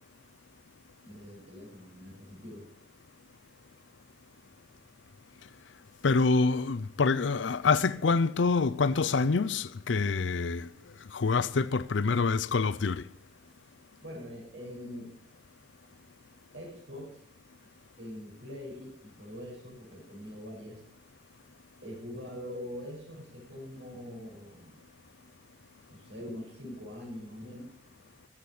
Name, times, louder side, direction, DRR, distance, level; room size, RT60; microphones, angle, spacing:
voice 1, 1.0-2.7 14.0-15.2 16.5-17.2 18.0-20.8 21.8-24.8 25.9-27.8, left 1 dB, 75° right, 6.0 m, -43 dB
voice 2, 6.0-10.7 11.1-13.0, left 4 dB, 75° left, 0.5 m, -26 dB
14.0 x 7.4 x 8.4 m
head